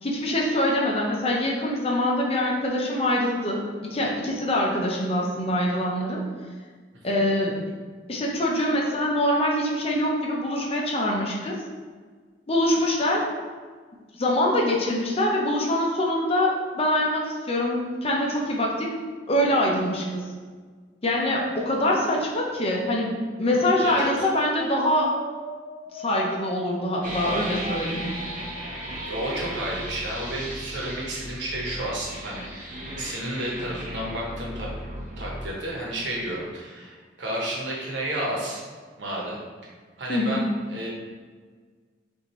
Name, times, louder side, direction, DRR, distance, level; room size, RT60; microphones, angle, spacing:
voice 1, 0.0-6.2 7.0-7.6 8.1-11.6 12.5-13.3 14.2-18.9 19.3-20.3 21.0-25.2 25.9-28.2 40.1-40.5, left 1 dB, 35° left, -2 dB, 0.7 m, -24 dB
sound 1, 23.1-30.1, right 2 dB, ahead, 0.8 m, -41 dB
voice 2, 23.7-24.1 29.1-34.7 35.2-38.6 39.0-39.4 40.0-40.4 40.7-40.9, right 1 dB, 80° right, -3 dB, 1.1 m, -31 dB
sound 2, 27.0-35.5, right 1 dB, 45° right, 0.9 m, -36 dB
5.5 x 2.7 x 3.1 m, 1.5 s
head